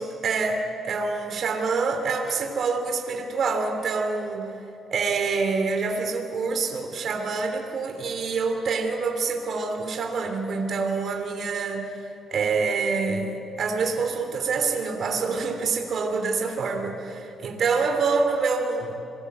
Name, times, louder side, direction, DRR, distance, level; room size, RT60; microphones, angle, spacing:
voice 1, 0.0-4.5 4.9-18.9, right 4 dB, 60° right, 4 dB, 3.0 m, -26 dB
26.5 x 21.0 x 8.2 m, 2.7 s
cardioid pair, 90°, 0 cm